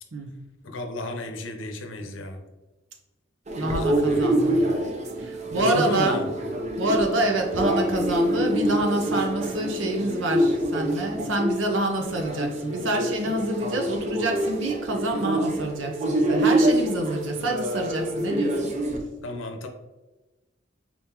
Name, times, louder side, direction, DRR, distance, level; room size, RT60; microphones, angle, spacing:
voice 1, 0.6-2.4 3.7-4.2 5.6-6.3 19.2-19.7, left 2 dB, 85° left, 5 dB, 0.7 m, -32 dB
sound 1, 3.5-19.0, right 1 dB, 40° right, 0.6 m, -26 dB
voice 2, 3.6-4.5 5.2-6.2 6.8-18.7, right 1 dB, 80° right, 2 dB, 0.8 m, -27 dB
4.2 x 3.7 x 2.9 m, 1.2 s
head